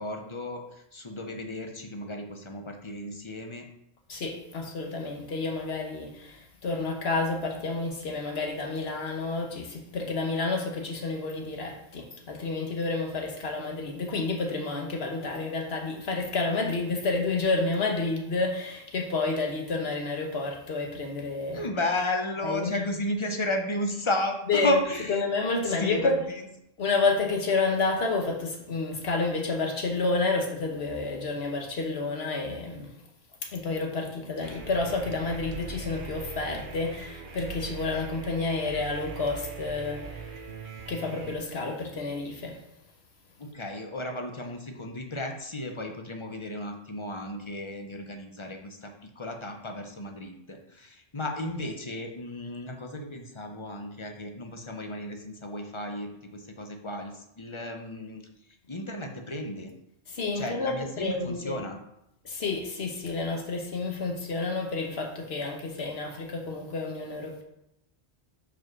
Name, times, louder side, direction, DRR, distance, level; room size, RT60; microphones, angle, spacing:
voice 1, 0.0-3.7 21.5-25.2 25.6-26.4 43.4-58.3 58.7-59.7 60.4-61.8, left 1 dB, 30° left, 0.9 m, -33 dB
voice 2, 4.1-21.7 22.4-22.8 24.5-24.8 25.1-26.2 26.8-32.9 33.4-40.2 40.9-42.6 60.1-61.6 62.2-67.4, left 3 dB, 70° left, 1.5 m, -30 dB
sound 1, 34.4-41.3, right 5 dB, 55° right, 1.0 m, -41 dB
5.3 x 4.8 x 6.0 m
omnidirectional pair, 1.1 m